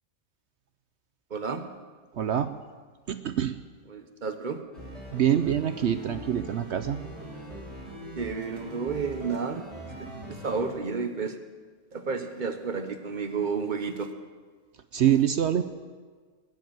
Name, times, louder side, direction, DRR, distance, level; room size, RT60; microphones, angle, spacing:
voice 1, 1.3-1.7 3.9-4.6 8.2-11.4 11.9-14.1, right 5 dB, 35° right, 8 dB, 1.2 m, -31 dB
voice 2, 2.2-2.5 3.1-3.5 5.1-7.0 14.9-15.6, right 10 dB, 60° right, 11 dB, 0.8 m, -25 dB
sound 1, 4.7-10.7, equal, ahead, 5.4 m, -41 dB
20.5 x 7.3 x 9.3 m, 1.5 s
omnidirectional pair, 1.5 m